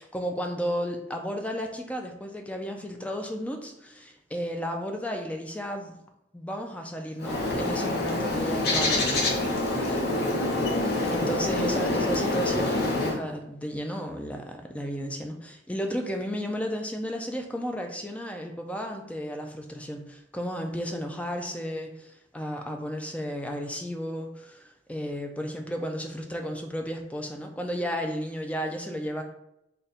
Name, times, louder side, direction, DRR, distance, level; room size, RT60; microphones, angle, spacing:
voice 1, 0.0-5.9 6.3-10.0 11.1-29.2, equal, 10° left, 3 dB, 0.4 m, -33 dB
Bird, 7.2-13.2, left 2 dB, 60° left, 0.7 m, -26 dB
3.6 x 2.2 x 4.1 m, 0.82 s
head